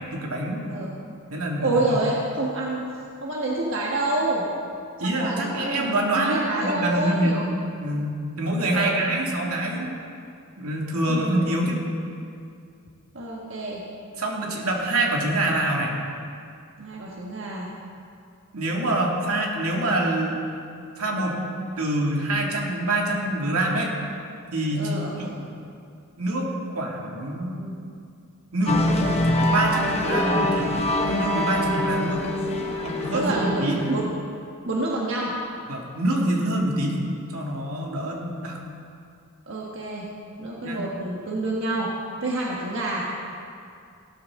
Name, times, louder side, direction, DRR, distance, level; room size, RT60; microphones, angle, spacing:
voice 1, 0.1-0.7 1.3-2.0 5.0-7.5 7.8-9.9 10.6-11.8 14.2-15.9 18.5-20.4 21.0-21.4 21.8-23.9 24.5-25.5 26.2-26.5 26.7-27.9 28.5-32.2 32.8-33.8 35.7-37.1 37.3-38.6 40.6-40.8, right 1 dB, 85° right, -1 dB, 2.3 m, -26 dB
voice 2, 1.6-2.8 3.2-4.5 5.2-7.4 8.7-9.0 11.1-11.4 13.1-13.8 16.8-17.7 24.7-25.3 33.1-34.0 34.7-35.3 39.5-40.1 40.4-41.9 42.2-43.0, right 2 dB, 60° right, -4 dB, 1.5 m, -27 dB
sound 1, 28.7-34.1, left 1 dB, 30° left, 1.1 m, -25 dB
16.5 x 13.0 x 3.7 m, 2.4 s
head